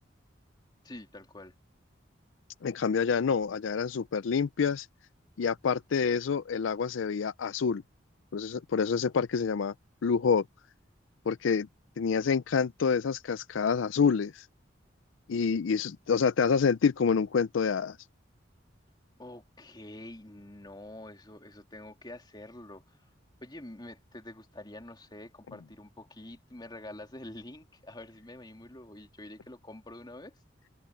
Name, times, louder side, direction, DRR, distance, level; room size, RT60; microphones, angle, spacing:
voice 1, 0.8-1.5 19.2-23.0 23.4-30.4, left 1 dB, 25° left, 2.8 m, -46 dB
voice 2, 2.6-4.9 5.4-7.8 8.3-9.7 10.0-10.4 11.3-11.7 12.0-14.5 15.3-18.0, left 6 dB, 80° left, 0.4 m, -27 dB
head